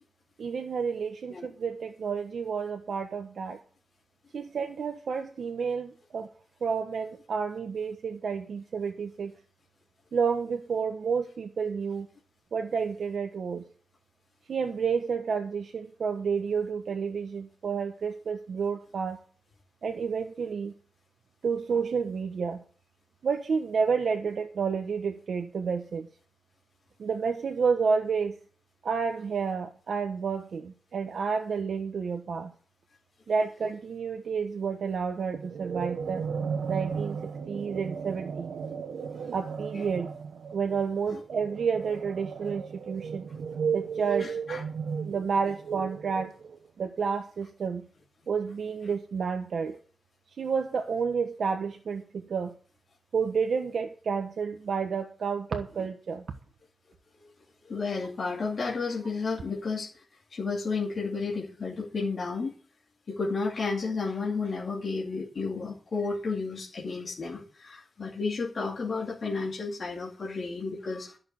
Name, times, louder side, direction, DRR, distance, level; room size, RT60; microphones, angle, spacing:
voice 1, 0.4-3.6 4.3-6.3 6.6-9.3 10.1-12.1 12.5-13.6 14.5-19.2 19.8-20.7 21.4-22.6 23.2-26.1 27.0-28.4 28.8-32.5 33.3-36.2 36.7-37.2 37.5-38.5 39.3-40.1 40.5-43.3 43.7-44.4 45.0-46.3 46.8-47.9 48.3-49.8 50.4-52.6 53.1-56.2, right 5 dB, 60° right, 4 dB, 1.2 m, -30 dB
sound 1, 35.3-46.7, right 6 dB, 80° right, 1.0 m, -35 dB
voice 2, 44.2-44.6 57.1-57.3 57.6-60.0 60.3-62.6 63.1-71.2, left 4 dB, 45° left, -4 dB, 2.6 m, -32 dB
13.0 x 6.7 x 8.7 m, 0.42 s
wide cardioid pair, 175°, 0 cm